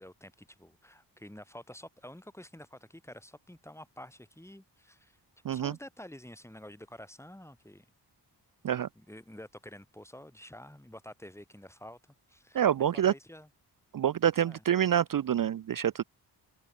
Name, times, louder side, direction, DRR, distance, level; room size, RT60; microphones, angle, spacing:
voice 1, 0.0-5.2 5.5-7.9 9.0-12.7 12.9-13.5 14.4-14.6, left 1 dB, 5° left, 1.8 m, -49 dB
voice 2, 12.5-13.1 13.9-16.0, right 10 dB, 55° right, 0.5 m, -27 dB
wide cardioid pair, 85°, 42 cm